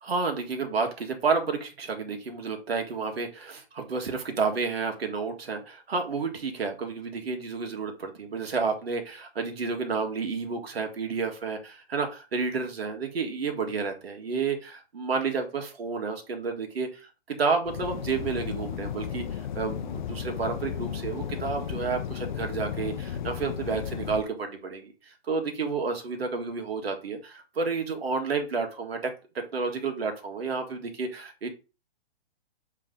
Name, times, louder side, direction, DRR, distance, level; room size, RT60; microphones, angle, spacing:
voice 1, 0.0-31.5, right 4 dB, 80° right, 4 dB, 1.8 m, -30 dB
sound 1, 17.6-24.2, left 8 dB, 50° left, 0.6 m, -34 dB
7.5 x 3.3 x 3.9 m, 0.31 s
hypercardioid pair, 155°, 30 cm